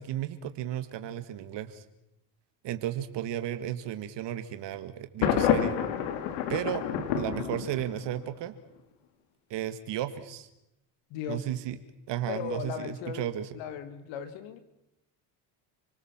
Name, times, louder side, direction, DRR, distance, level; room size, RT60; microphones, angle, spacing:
voice 1, 0.0-1.8 2.6-5.8 6.5-6.8 7.2-8.5 9.5-10.5 11.3-11.8 12.1-13.5, right 11 dB, 60° right, 10 dB, 2.0 m, -34 dB
Thunder, 5.2-8.2, left 9 dB, 85° left, 2.7 m, -28 dB
voice 2, 11.1-11.5 12.3-14.6, left 7 dB, 70° left, 10 dB, 2.4 m, -37 dB
29.0 x 19.0 x 7.4 m, 0.89 s
supercardioid pair, 85°, 47 cm